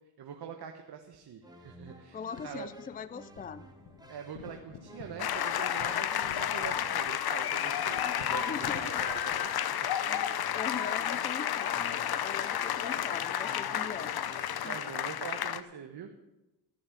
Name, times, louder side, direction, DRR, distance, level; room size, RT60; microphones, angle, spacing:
voice 1, 0.2-2.7 4.1-9.9 14.6-16.1, right 8 dB, 55° right, 4 dB, 1.4 m, -44 dB
sound 1, 1.4-15.1, right 1 dB, 10° right, 2.1 m, -54 dB
voice 2, 2.1-3.7 6.0-6.2 8.0-9.0 10.5-11.8 12.2-14.2 14.6-14.8, left 6 dB, 20° left, 16 dB, 0.5 m, -41 dB
sound 2, 2.3-9.3, left 7 dB, 85° left, 1.4 m, -51 dB
sound 3, 5.2-15.6, left 10 dB, 55° left, 0.9 m, -31 dB
14.5 x 6.6 x 8.5 m, 0.99 s
cardioid pair, 80°, 45 cm